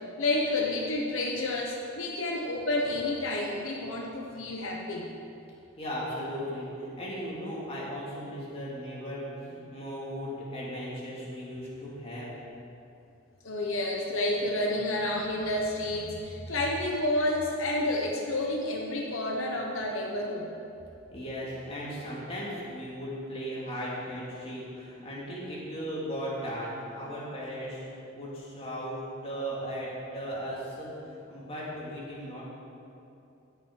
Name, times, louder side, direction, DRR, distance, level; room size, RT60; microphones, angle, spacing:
voice 1, 0.2-5.1 13.4-20.5, left 1 dB, 80° left, -1 dB, 1.1 m, -30 dB
voice 2, 5.8-12.3 21.1-27.8 28.1-32.4, equal, 30° left, -6 dB, 2.7 m, -37 dB
16.5 x 6.4 x 4.7 m, 2.7 s
head